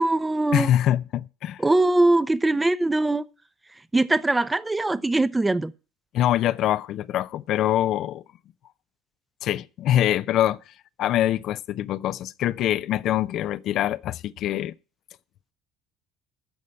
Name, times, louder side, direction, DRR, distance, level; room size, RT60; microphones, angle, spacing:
voice 1, 0.0-0.7 1.6-3.2 3.9-5.7, right 2 dB, 15° right, 0.7 m, -21 dB
voice 2, 0.5-1.6 6.1-8.2 9.4-10.6 11.0-14.7, left 12 dB, 55° left, 0.6 m, -24 dB
13.0 x 5.3 x 8.8 m
hypercardioid pair, 60°, 0 cm